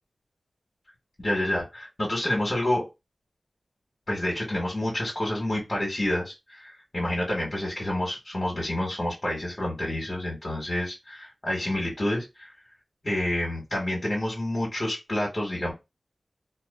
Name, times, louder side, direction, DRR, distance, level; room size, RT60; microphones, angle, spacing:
voice 1, 1.2-2.9 4.1-12.5 13.0-15.7, left 1 dB, 45° left, -3 dB, 1.2 m, -28 dB
2.4 x 2.3 x 2.3 m, 0.24 s
cardioid pair, 45°, 0 cm